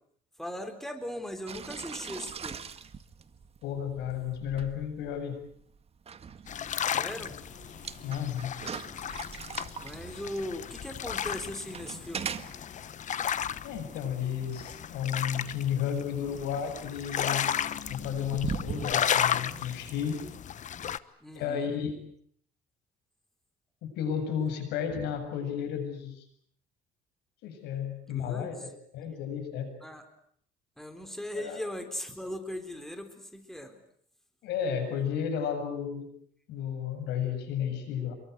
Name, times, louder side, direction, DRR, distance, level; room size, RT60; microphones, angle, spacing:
voice 1, 0.4-2.7 6.9-7.4 9.8-12.4 21.2-21.7 28.1-28.7 29.8-30.1 30.8-33.8, left 1 dB, ahead, 7 dB, 4.0 m, -39 dB
sound 1, 1.5-19.0, right 6 dB, 35° right, 1.8 m, -42 dB
voice 2, 3.6-5.4 8.0-8.6 13.6-17.5 17.9-20.2 21.3-21.9 23.8-26.2 27.4-29.7 31.3-31.6 34.4-36.1 36.5-38.2, left 8 dB, 85° left, 8 dB, 7.7 m, -33 dB
sound 2, 6.5-21.0, left 9 dB, 45° left, 1.2 m, -34 dB
28.0 x 23.0 x 8.2 m, 0.63 s
cardioid pair, 110°, 17 cm